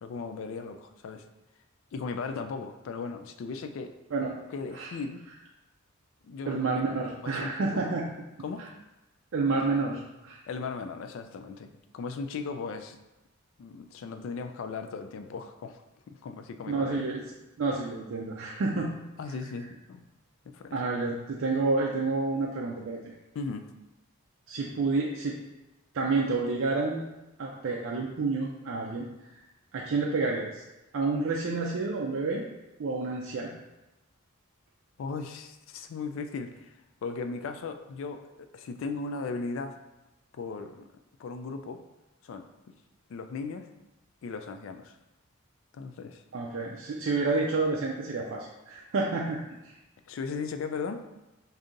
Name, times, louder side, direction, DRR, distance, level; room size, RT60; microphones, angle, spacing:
voice 1, 0.0-1.2 1.9-3.9 4.5-5.2 6.2-6.8 7.2-7.8 8.4-8.7 10.5-13.0 13.6-15.8 16.1-17.1 19.2-20.1 20.4-20.8 23.3-23.7 35.0-39.8 40.3-40.9 41.2-41.8 42.2-42.7 43.1-43.7 44.2-45.0 45.7-46.2 50.1-51.1, left 4 dB, 60° left, 7 dB, 0.3 m, -37 dB
voice 2, 6.5-8.1 9.3-10.4 16.7-17.2 17.6-18.9 20.7-23.1 24.5-25.4 25.9-27.0 27.4-29.1 29.7-30.6 30.9-32.5 32.8-33.5 46.3-49.4 49.6-49.7, right 3 dB, 65° right, -2 dB, 0.4 m, -29 dB
5.1 x 2.7 x 2.5 m, 0.99 s
head